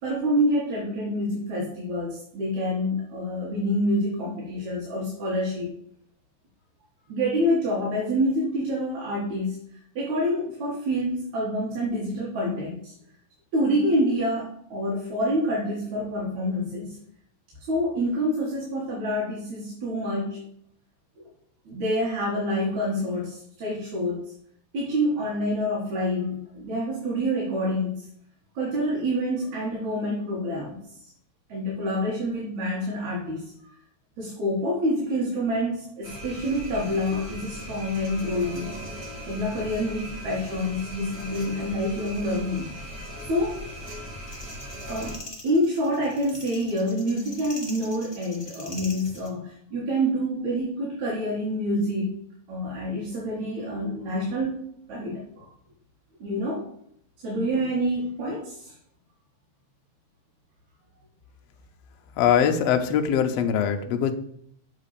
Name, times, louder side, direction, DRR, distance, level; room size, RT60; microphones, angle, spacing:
voice 1, 0.0-5.7 7.1-9.6 10.0-12.9 13.5-17.0 17.7-20.4 21.7-24.2 24.7-28.1 28.6-30.8 31.5-33.5 34.2-38.7 39.2-42.7 43.3-43.6 44.9-52.2 52.5-55.5 56.2-56.6 57.2-58.7, equal, 75° right, -4 dB, 3.0 m, -27 dB
sound 1, 36.0-45.2, equal, 45° right, 3.2 m, -38 dB
sound 2, 44.3-49.3, left 2 dB, 30° left, 0.4 m, -43 dB
voice 2, 62.2-64.1, left 8 dB, 75° left, 5 dB, 1.7 m, -22 dB
7.6 x 4.1 x 6.7 m, 0.67 s
omnidirectional pair, 3.3 m